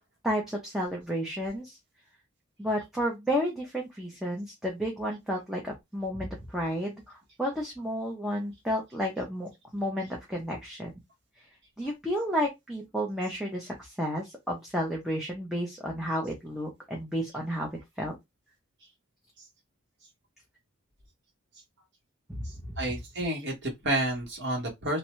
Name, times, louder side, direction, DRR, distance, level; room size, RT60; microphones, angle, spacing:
voice 1, 0.2-1.8 2.6-10.9 11.4-11.5 11.8-17.7 18.0-18.1 22.3-22.7, equal, ahead, 0.6 m, -32 dB
voice 2, 22.8-25.0, right 1 dB, 55° right, 1.3 m, -30 dB
2.5 x 2.2 x 3.0 m
head